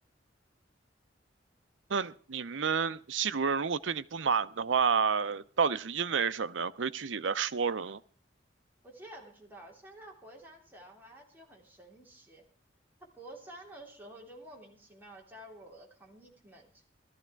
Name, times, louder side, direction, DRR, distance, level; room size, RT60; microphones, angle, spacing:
voice 1, 1.9-8.0, right 6 dB, 85° right, 0.7 m, -30 dB
voice 2, 8.8-12.4 13.0-16.8, right 1 dB, 10° right, 3.3 m, -51 dB
16.0 x 13.5 x 4.6 m
head